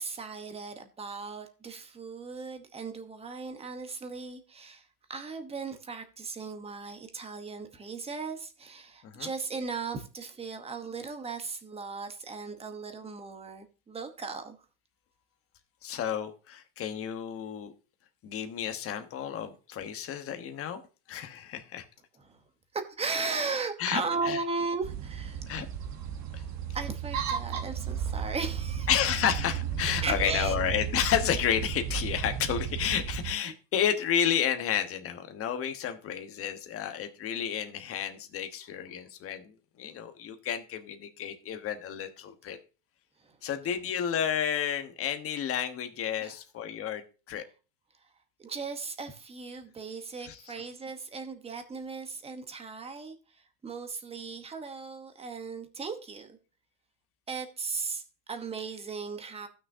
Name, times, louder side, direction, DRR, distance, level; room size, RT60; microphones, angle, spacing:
voice 1, 0.0-14.6 22.2-22.4 22.7-25.4 26.7-28.9 30.0-30.6 33.5-33.6 43.2-43.4 46.2-46.4 48.4-56.4 57.3-59.5, right 4 dB, 10° right, 1.0 m, -37 dB
voice 2, 15.8-17.7 18.2-20.8 21.1-21.8 23.8-24.4 25.5-25.7 26.3-26.4 28.9-42.6 43.4-47.4 50.2-50.4, left 9 dB, 30° left, 1.2 m, -31 dB
sound 1, 24.8-33.3, right 8 dB, 35° right, 1.2 m, -34 dB
15.5 x 6.3 x 2.7 m
supercardioid pair, 145°, 48 cm